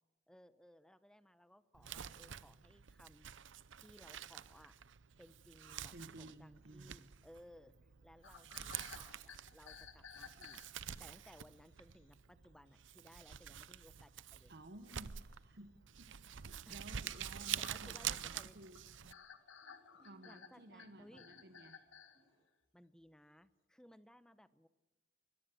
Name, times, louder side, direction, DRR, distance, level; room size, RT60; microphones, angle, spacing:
voice 1, 0.3-3.3 3.8-4.8 5.2-10.6 11.0-14.5 16.5-16.9 17.3-18.6 18.9-19.1 20.2-21.3 22.7-24.7, equal, 5° left, 13 dB, 0.8 m, -62 dB
Crumpling crinkling, 1.7-19.1, right 10 dB, 75° right, 0.7 m, -47 dB
voice 2, 5.9-7.0 14.5-16.1 16.7-18.8 20.0-21.9, right 1 dB, 55° right, 7 dB, 1.1 m, -55 dB
sound 1, 8.2-11.1 12.0-12.1 12.4-12.5 13.1-13.2 13.5-14.0 14.6-14.7 15.0-15.1 15.9-16.0 16.4-22.2, left 6 dB, 85° left, 1.9 m, -57 dB
sound 2, 18.5-22.4, right 1 dB, 25° right, 5.5 m, -71 dB
22.5 x 21.5 x 7.8 m, 1.1 s
head